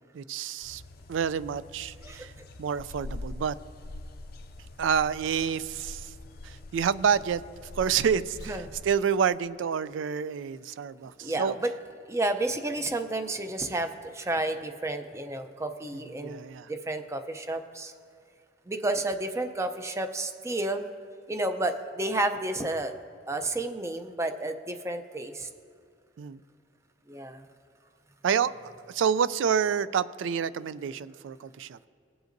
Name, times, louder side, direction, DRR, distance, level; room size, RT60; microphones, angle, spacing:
voice 1, 0.1-0.8 1.1-2.3 2.6-3.6 4.8-6.1 6.4-11.6 16.2-16.7 26.2-26.4 28.2-31.9, right 7 dB, 80° right, 17 dB, 0.3 m, -28 dB
sound 1, 0.6-8.9, left 2 dB, 50° left, 0.5 m, -44 dB
voice 2, 2.0-2.5 8.5-8.7 11.2-11.7 12.1-16.4 16.7-17.9 18.7-20.9 21.3-22.9 23.3-25.5 27.1-27.4, right 2 dB, 15° right, 7 dB, 0.5 m, -31 dB
20.0 x 7.8 x 2.6 m, 2.4 s
head